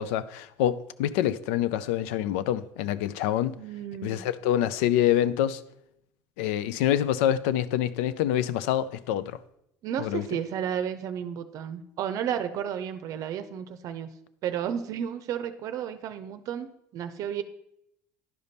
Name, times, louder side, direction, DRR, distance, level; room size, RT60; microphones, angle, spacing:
voice 1, 0.0-3.5 4.0-5.6 6.4-9.4 10.0-10.3, left 11 dB, 90° left, 0.4 m, -26 dB
voice 2, 3.6-4.2 9.8-14.1 14.4-16.7 16.9-17.4, right 9 dB, 55° right, 0.6 m, -32 dB
11.0 x 5.2 x 4.1 m
supercardioid pair, 110°, 7 cm